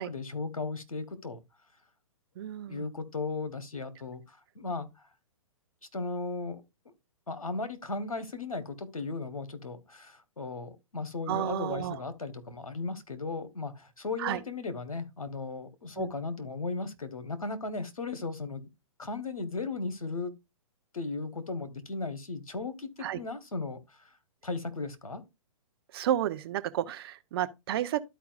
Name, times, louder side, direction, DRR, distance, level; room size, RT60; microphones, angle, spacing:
voice 1, 0.0-1.4 2.7-4.9 5.9-6.6 7.3-18.7 19.0-20.3 20.9-24.0 24.4-25.2, left 3 dB, 90° left, 1.2 m, -36 dB
voice 2, 2.4-2.9 11.3-12.0 14.2-14.4 16.0-16.1 23.0-23.2 25.9-28.0, right 11 dB, 45° right, 0.8 m, -31 dB
13.0 x 4.6 x 2.4 m
figure-of-eight pair, 125°, 18 cm